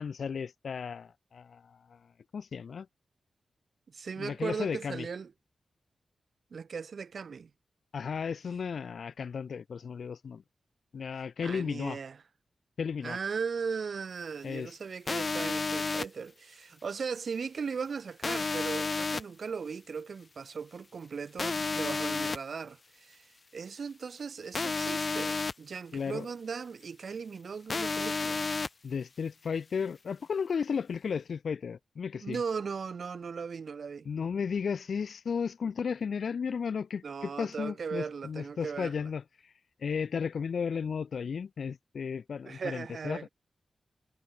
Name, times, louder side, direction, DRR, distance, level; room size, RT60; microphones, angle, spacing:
voice 1, 0.0-2.0 2.3-2.9 4.2-5.1 7.9-10.4 10.9-12.0 12.8-13.2 14.4-14.7 25.9-26.3 28.8-32.4 34.1-39.2 39.8-43.3, left 6 dB, 70° left, 1.8 m, -34 dB
voice 2, 3.9-5.3 6.5-7.5 11.4-12.2 13.0-28.4 32.2-34.1 37.0-39.1 42.4-43.3, right 5 dB, 65° right, 6.8 m, -38 dB
sound 1, 15.1-16.1 18.2-19.2 21.4-22.4 24.5-25.5 27.7-28.7, left 4 dB, 40° left, 2.7 m, -31 dB
wide cardioid pair, 100°, 0 cm